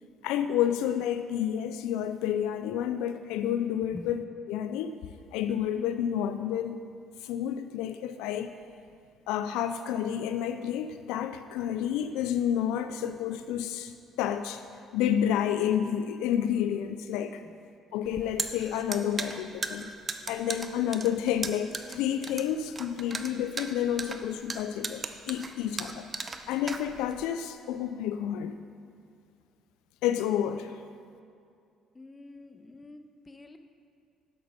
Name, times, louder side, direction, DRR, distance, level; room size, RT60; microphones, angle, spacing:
voice 1, 0.2-4.2 4.5-4.9 5.3-6.8 7.2-8.5 9.3-14.6 14.9-17.4 17.9-19.9 20.3-26.1 26.5-28.5 30.0-30.8, left 10 dB, 80° left, 9 dB, 0.3 m, -30 dB
sound 1, 18.0-27.3, right 4 dB, 35° right, 0.7 m, -37 dB
voice 2, 31.9-33.6, left 2 dB, 25° left, 8 dB, 0.8 m, -46 dB
8.1 x 7.6 x 5.5 m, 2.4 s
hypercardioid pair, 60°, 0 cm